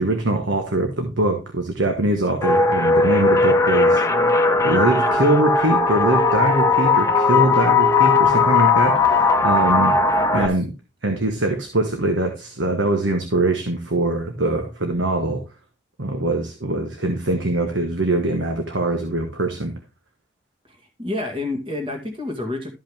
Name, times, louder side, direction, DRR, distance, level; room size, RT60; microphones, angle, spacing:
voice 1, 0.0-4.0 4.6-10.0 10.3-10.7 11.0-15.4 16.0-19.7, right 2 dB, 80° right, 4 dB, 1.3 m, -22 dB
sound 1, 2.4-10.5, left 3 dB, 15° left, 0.9 m, -17 dB
voice 2, 20.7-22.7, left 2 dB, 30° right, 2 dB, 2.0 m, -29 dB
13.0 x 5.4 x 3.5 m, 0.27 s
head